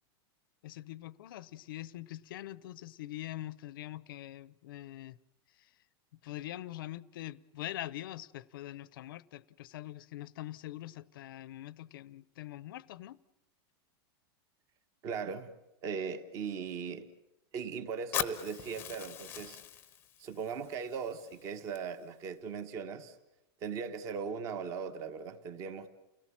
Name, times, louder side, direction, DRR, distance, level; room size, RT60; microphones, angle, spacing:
voice 1, 0.6-5.2 5.6-5.7 6.2-13.2, left 15 dB, 55° left, 0.8 m, -43 dB
voice 2, 15.0-15.5 15.8-17.1 17.5-19.6 20.2-23.2 23.6-25.9, right 6 dB, 25° right, 1.3 m, -38 dB
Fire, 18.1-22.1, left 10 dB, 15° left, 0.9 m, -41 dB
30.0 x 18.5 x 7.4 m
supercardioid pair, 180°, 14 cm